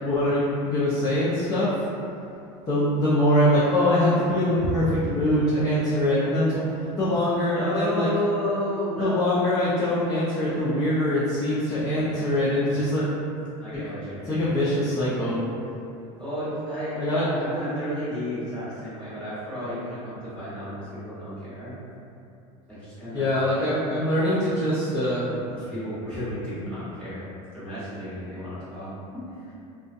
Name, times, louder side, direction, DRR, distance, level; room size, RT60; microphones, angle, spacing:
voice 1, 0.0-1.7 2.7-6.6 7.0-8.1 9.0-13.0 13.7-13.8 14.3-15.3 16.9-17.3 23.1-25.2, left 1 dB, 25° left, -9 dB, 0.5 m, -23 dB
voice 2, 7.5-9.2 11.9-12.7 13.6-14.4 16.2-21.7 22.7-23.3 25.5-27.3 27.5-29.5, equal, 5° left, -14 dB, 1.3 m, -32 dB
2.4 x 2.2 x 2.5 m, 2.7 s
supercardioid pair, 120°, 15 cm